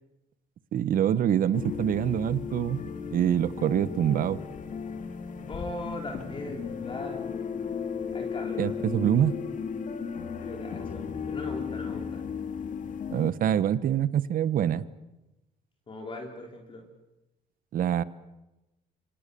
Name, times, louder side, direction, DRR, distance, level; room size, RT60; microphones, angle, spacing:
voice 1, 0.7-2.8 3.1-4.4 8.6-9.4 13.1-14.8 17.7-18.0, right 10 dB, 55° right, 16 dB, 1.1 m, -25 dB
sound 1, 1.5-13.3, left 6 dB, 50° left, 2.5 m, -35 dB
voice 2, 5.5-7.3 8.1-8.8 10.4-12.3 15.9-16.9, left 2 dB, 30° left, 1 dB, 3.7 m, -39 dB
27.0 x 26.0 x 7.0 m, 0.99 s
cardioid pair, 110°, 17 cm